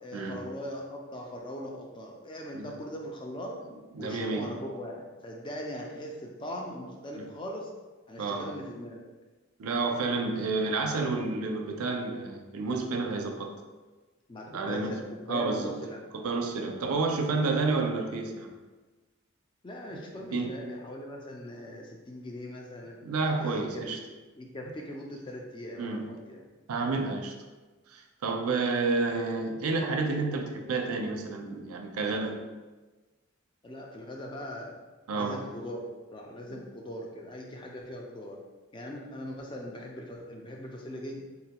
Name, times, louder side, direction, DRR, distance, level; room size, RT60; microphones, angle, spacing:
voice 1, 0.0-3.5 4.0-7.7 8.1-9.1 14.3-16.1 19.6-22.9 23.4-23.8 24.3-26.4 33.6-34.8 35.1-38.4 38.7-41.2, equal, 20° left, 0 dB, 0.3 m, -40 dB
voice 2, 3.9-4.6 7.1-7.3 8.2-8.5 9.6-13.5 14.5-15.0 15.3-15.8 16.1-18.5 19.9-20.6 23.0-24.0 25.8-26.1 26.7-27.3 27.9-32.4 35.1-35.5 36.5-36.6, right 3 dB, 90° right, 4 dB, 0.4 m, -30 dB
3.9 x 2.2 x 2.8 m, 1.3 s
head